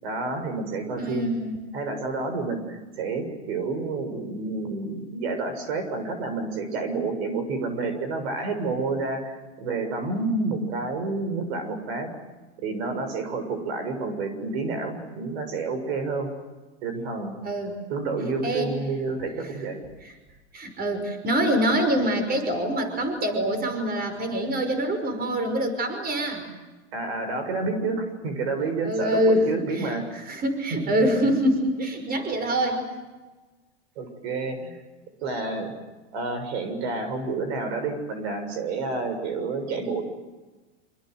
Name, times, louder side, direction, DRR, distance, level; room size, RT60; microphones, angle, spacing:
voice 1, 0.0-1.3 1.7-12.1 12.6-16.3 16.8-17.3 17.9-19.8 26.9-30.0 30.8-31.1 34.0-34.8 35.2-35.7 36.1-40.0, right 3 dB, 70° right, 8 dB, 7.3 m, -29 dB
voice 2, 1.0-1.6 17.4-17.8 18.4-18.7 19.4-19.5 20.0-20.1 20.5-26.5 28.8-32.8, equal, 30° right, 7 dB, 5.7 m, -25 dB
27.0 x 26.5 x 8.0 m, 1.2 s
supercardioid pair, 110°, 33 cm